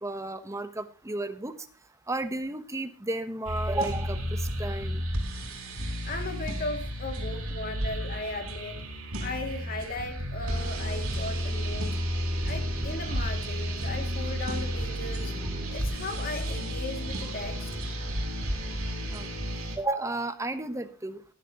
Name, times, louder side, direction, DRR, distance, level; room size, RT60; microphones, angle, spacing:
voice 1, 0.0-1.6 2.1-5.0 19.1-19.3 19.8-21.2, right 2 dB, 15° right, 10 dB, 0.9 m, -33 dB
sound 1, 3.4-19.8, equal, 85° right, 3.7 m, -32 dB
voice 2, 6.0-8.8 9.2-12.0 12.4-15.4 15.7-17.8, left 2 dB, 45° left, 4 dB, 2.3 m, -37 dB
17.5 x 10.5 x 2.9 m, 0.34 s
head